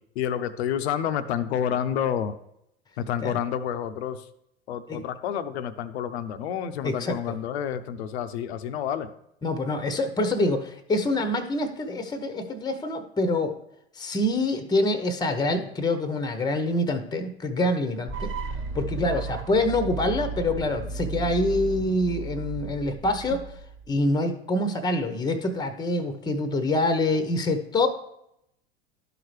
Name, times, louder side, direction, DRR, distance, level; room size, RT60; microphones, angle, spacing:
voice 1, 0.2-2.4 3.0-4.2 4.7-9.1, left 9 dB, 75° left, 11 dB, 0.7 m, -29 dB
voice 2, 6.8-7.3 9.4-13.6 14.0-18.3 18.7-23.4 23.9-27.9, left 2 dB, 10° left, 9 dB, 0.8 m, -26 dB
sound 1, 18.1-24.0, right 3 dB, 35° right, 1.2 m, -34 dB
12.0 x 4.9 x 3.2 m, 0.78 s
hypercardioid pair, 85°, 32 cm